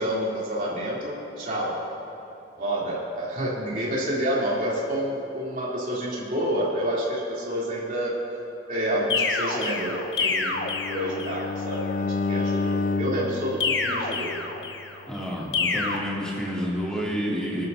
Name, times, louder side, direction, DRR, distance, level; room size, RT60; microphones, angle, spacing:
voice 1, 0.0-1.8 2.6-8.2 8.7-10.6 10.9-14.4, equal, 50° right, -6 dB, 3.3 m, -28 dB
sound 1, 9.1-11.5 13.6-15.0 15.5-16.0, left 4 dB, 75° left, 1.1 m, -27 dB
Bowed string instrument, 10.5-14.6, left 3 dB, 45° left, 0.3 m, -30 dB
voice 2, 15.1-17.7, equal, 5° left, -6 dB, 2.7 m, -29 dB
26.0 x 12.5 x 2.8 m, 2.9 s
head